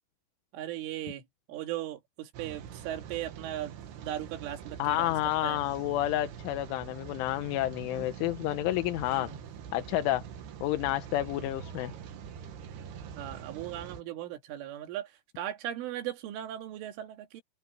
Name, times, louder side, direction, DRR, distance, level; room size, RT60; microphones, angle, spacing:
voice 1, 0.5-1.2 1.5-3.7 4.0-5.2 5.4-5.6 9.1-9.4 11.4-11.6 13.2-17.4, right 12 dB, 80° right, 4.7 m, -38 dB
Rain, 2.3-14.0, right 8 dB, 65° right, 3.4 m, -44 dB
voice 2, 4.8-9.3 9.7-10.2 10.6-11.9, left 15 dB, 80° left, 3.5 m, -30 dB
open air
omnidirectional pair, 5.6 m